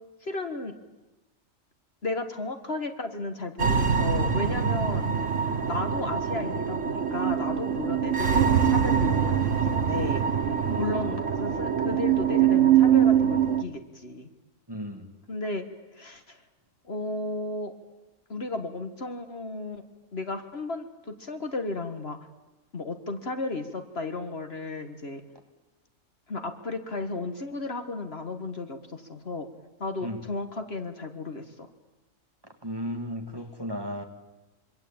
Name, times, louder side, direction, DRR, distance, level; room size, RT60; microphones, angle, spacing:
voice 1, 0.2-0.7 2.0-5.1 5.7-10.2 10.5-14.3 15.3-15.7 15.9-16.4 16.8-17.7 18.3-19.8 20.1-22.2 22.7-25.2 26.3-29.5 29.8-31.7, left 3 dB, 50° left, 7 dB, 1.9 m, -34 dB
sound 1, 3.6-13.6, right 8 dB, 65° right, 1.6 m, -24 dB
voice 2, 14.7-15.1 30.0-30.2 32.6-34.0, equal, 20° right, 4 dB, 2.5 m, -34 dB
26.0 x 25.0 x 8.9 m, 1.1 s
omnidirectional pair, 1.4 m